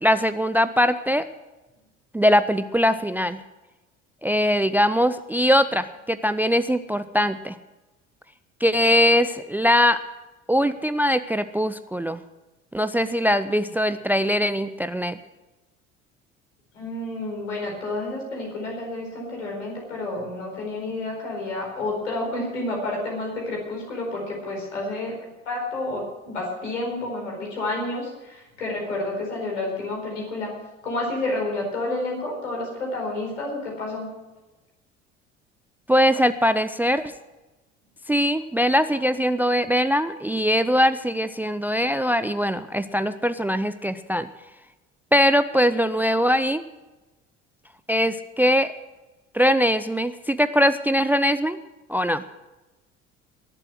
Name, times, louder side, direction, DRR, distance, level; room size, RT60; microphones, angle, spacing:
voice 1, 0.0-1.2 2.1-3.4 4.2-7.5 8.6-10.0 10.5-12.2 12.7-15.2 35.9-37.1 38.1-44.3 45.1-46.6 47.9-48.7 49.3-51.6 51.9-52.2, equal, 5° right, 13 dB, 0.5 m, -21 dB
voice 2, 16.7-25.2 25.4-30.5 30.8-34.1, left 2 dB, 75° left, 0 dB, 4.6 m, -30 dB
20.5 x 7.7 x 6.1 m, 1.1 s
figure-of-eight pair, 60°, 36 cm